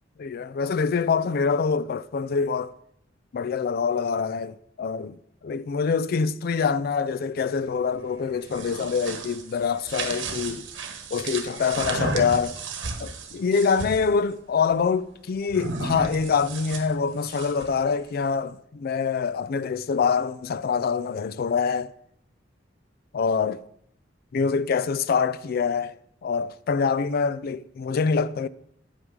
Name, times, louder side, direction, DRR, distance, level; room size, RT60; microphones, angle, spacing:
voice 1, 0.2-2.7 3.3-5.2 5.4-10.7 11.1-12.6 13.0-21.9 23.1-23.6 24.3-25.9 26.2-28.5, left 5 dB, 55° left, 0.4 m, -25 dB
sound 1, 8.3-14.1 15.5-17.8, right 3 dB, 75° right, 1.2 m, -33 dB
9.5 x 7.9 x 3.7 m
head